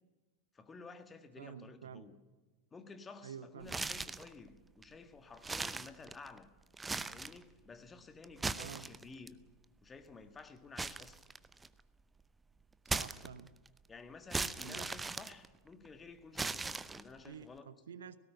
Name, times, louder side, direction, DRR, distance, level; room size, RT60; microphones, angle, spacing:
voice 1, 0.5-2.2 2.7-6.5 7.1-9.4 9.8-11.2 13.9-17.7, left 4 dB, 15° left, 1.7 m, -53 dB
voice 2, 1.4-2.0 3.2-3.8 8.6-8.9 12.8-13.5 14.6-14.9 17.2-18.2, right 7 dB, 65° right, 0.9 m, -49 dB
sound 1, 3.6-4.3 4.8-4.9 5.4-6.4 6.7-7.4 8.2-9.3 10.8-11.8 12.9-13.7 14.3-15.9 16.4-17.3, right 3 dB, 10° right, 0.7 m, -38 dB
18.0 x 17.5 x 8.9 m
figure-of-eight pair, 90°, 0 cm